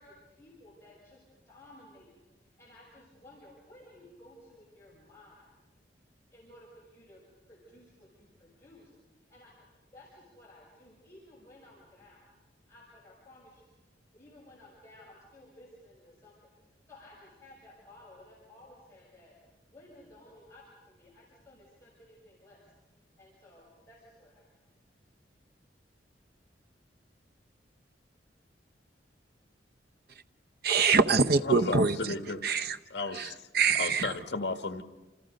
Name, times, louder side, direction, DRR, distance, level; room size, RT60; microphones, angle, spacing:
voice 1, 0.0-12.4 12.6-24.7 25.2-25.3, left 1 dB, 15° left, -6 dB, 6.8 m, -56 dB
voice 2, 30.6-32.0 32.4-32.8 33.2-33.3 33.5-34.1, right 5 dB, 60° right, 11 dB, 0.9 m, -24 dB
voice 3, 31.4-32.4 32.9-33.5 33.7-34.8, left 3 dB, 70° left, 7 dB, 1.5 m, -34 dB
28.5 x 28.0 x 5.3 m, 1.1 s
head